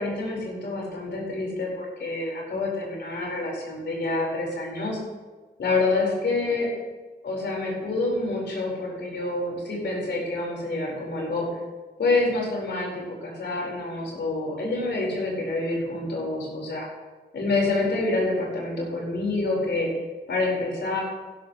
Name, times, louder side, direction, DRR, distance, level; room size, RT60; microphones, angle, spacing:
voice 1, 0.0-5.0 5.6-6.7 7.2-11.5 12.0-16.8 17.3-19.9 20.3-21.0, left 2 dB, 70° left, -2 dB, 4.8 m, -27 dB
15.5 x 12.5 x 3.2 m, 1.3 s
cardioid pair, 90°, 18 cm